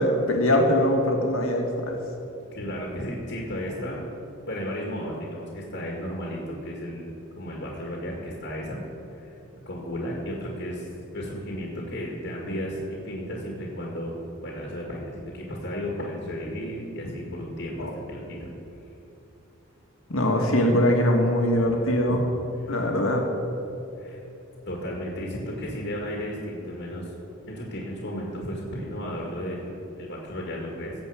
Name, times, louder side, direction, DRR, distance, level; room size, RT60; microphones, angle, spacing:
voice 1, 0.0-2.0 17.8-17.9 20.1-22.2 22.7-23.2, left 1 dB, 65° left, 2 dB, 1.8 m, -22 dB
voice 2, 2.5-4.0 4.5-8.8 9.1-9.4 9.7-14.1 14.4-18.5 21.6-21.7 22.1-22.2 22.6-22.7 24.0-24.2 24.7-27.1 27.5-30.9, equal, 50° left, -2 dB, 1.9 m, -34 dB
17.0 x 7.6 x 5.0 m, 3.0 s
head